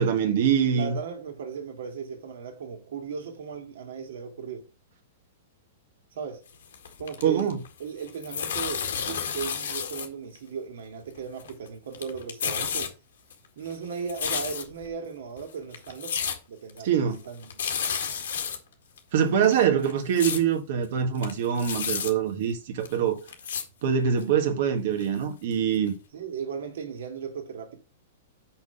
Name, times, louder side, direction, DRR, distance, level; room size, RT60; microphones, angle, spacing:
voice 1, 0.0-1.0 7.2-7.6 16.8-17.2 19.1-23.2 23.8-25.9, right 8 dB, 45° right, 1.7 m, -24 dB
voice 2, 0.7-4.7 6.1-6.4 7.0-12.9 13.6-17.5 26.1-27.8, right 6 dB, 65° right, 2.2 m, -36 dB
sound 1, 6.5-7.7 8.0-10.1 10.3-10.4 11.2-11.7 11.9-12.9 13.3-14.9 15.4-15.5 15.7-16.4 16.7-16.8 17.1-17.2 17.4-18.6 19.0-19.1 19.4-20.4 20.8-20.9 21.1-22.1 22.8-22.9 23.3-23.6 24.2-24.3 25.0-25.1 25.5-25.6 25.9-26.0, left 7 dB, 80° left, 1.8 m, -31 dB
6.0 x 5.9 x 5.8 m
supercardioid pair, 180°, 0 cm